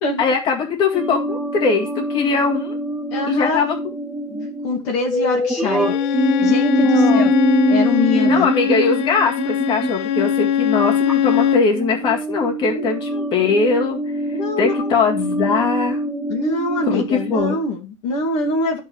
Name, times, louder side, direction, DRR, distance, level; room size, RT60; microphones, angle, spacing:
voice 1, 0.2-2.8 3.3-3.8 4.3-4.5 6.8-7.3 8.3-16.0 16.9-17.6, left 4 dB, 35° left, 1 dB, 2.1 m, -21 dB
sound 1, 0.9-10.3 11.1-11.4 11.7-17.4, right 1 dB, 5° right, 0.6 m, -23 dB
voice 2, 3.1-3.6 4.6-6.0 6.4-7.3 7.7-8.5 12.8-12.9 13.2-13.3 14.3-14.9 16.3-18.8, left 2 dB, 55° left, -1 dB, 1.9 m, -24 dB
Bowed string instrument, 5.6-11.7, left 9 dB, 75° left, 0.7 m, -21 dB
13.0 x 4.4 x 3.2 m, 0.27 s
supercardioid pair, 160°, 14 cm